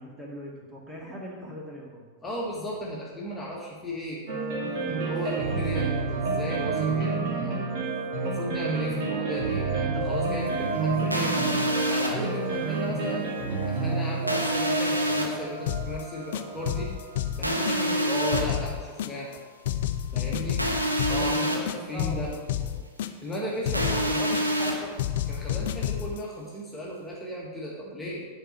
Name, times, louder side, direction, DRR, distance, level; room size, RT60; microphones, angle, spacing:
voice 1, 0.0-2.1 21.1-22.8, equal, 15° right, -2 dB, 2.1 m, -40 dB
voice 2, 2.2-4.2 4.9-7.7 8.1-11.4 11.8-13.3 13.6-16.9 17.3-19.4 20.1-20.6 21.0-22.3 23.2-24.9 25.3-28.3, equal, 10° left, -5 dB, 1.7 m, -35 dB
sound 1, 4.3-17.2, right 4 dB, 50° right, 2.6 m, -29 dB
sound 2, 11.1-12.1 14.3-15.2 17.4-18.4 20.6-21.6 23.7-24.7, right 1 dB, 85° right, 1.1 m, -26 dB
sound 3, 15.7-16.0 16.3-18.0 18.3-19.4 19.6-21.4 21.7-23.4 23.6-24.7 25.0-26.2, left 10 dB, 55° left, 0.5 m, -30 dB
10.0 x 5.1 x 5.7 m, 1.5 s
figure-of-eight pair, 90°, 0 cm